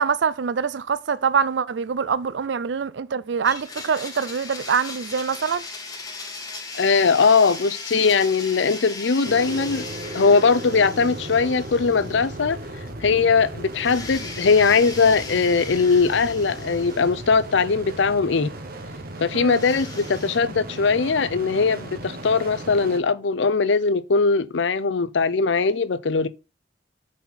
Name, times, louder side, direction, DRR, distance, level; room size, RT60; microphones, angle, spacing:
voice 1, 0.0-5.7 19.3-19.6, right 6 dB, 70° right, 0.4 m, -24 dB
Domestic sounds home sounds, 3.4-12.6 12.9-13.0 13.7-17.7 19.5-20.4, left 3 dB, 20° left, 1.3 m, -38 dB
voice 2, 6.7-9.9 10.1-12.6 13.0-18.5 19.2-26.3, left 4 dB, 75° left, 0.6 m, -20 dB
sound 1, 9.2-23.0, right 1 dB, 50° right, 1.3 m, -36 dB
6.3 x 4.2 x 5.6 m
head